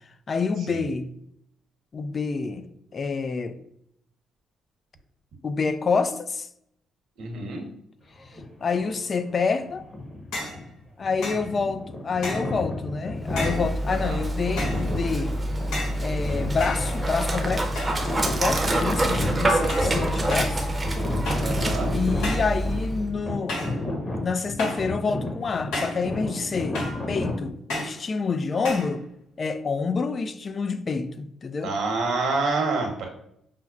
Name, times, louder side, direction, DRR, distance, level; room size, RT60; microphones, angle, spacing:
voice 1, 0.3-1.1 1.9-2.7 2.9-3.6 5.4-6.5 8.6-9.9 11.0-15.4 16.0-17.7 18.2-20.7 21.9-23.7 24.0-26.8 27.1-29.0 29.4-31.7, left 4 dB, 40° left, 0.3 m, -27 dB
voice 2, 7.2-7.6 13.9-14.2 21.4-21.9 31.6-33.1, right 3 dB, 80° right, 1.0 m, -27 dB
sound 1, 8.2-9.0 9.6-27.5, left 1 dB, 20° left, 1.0 m, -32 dB
sound 2, 10.3-10.6 11.2-11.5 12.2-12.6 13.4-13.7 14.6-14.9 15.7-16.0 16.6-17.3 17.8-18.1 18.5-18.9 19.7-20.0 20.3-20.6 21.3-21.6 22.2-22.6 23.5-23.8 24.6-24.9 25.7-26.1 26.7-27.1 27.7-28.0 28.6-28.9, left 1 dB, 90° left, 1.2 m, -32 dB
Dog, 13.2-23.1, right 1 dB, 25° right, 0.6 m, -27 dB
5.7 x 2.0 x 2.3 m
cardioid pair, 90°, 0 cm